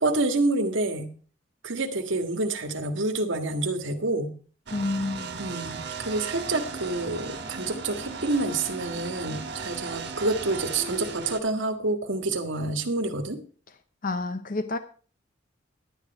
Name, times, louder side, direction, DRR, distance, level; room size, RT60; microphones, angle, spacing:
voice 1, 0.0-1.1 1.6-4.3 5.4-13.4, right 2 dB, 80° right, 1.6 m, -28 dB
voice 2, 4.7-5.3 14.0-14.8, left 2 dB, 45° left, 0.7 m, -29 dB
sound 1, 4.7-11.4, right 4 dB, 60° right, 1.5 m, -36 dB
11.5 x 9.2 x 4.7 m
head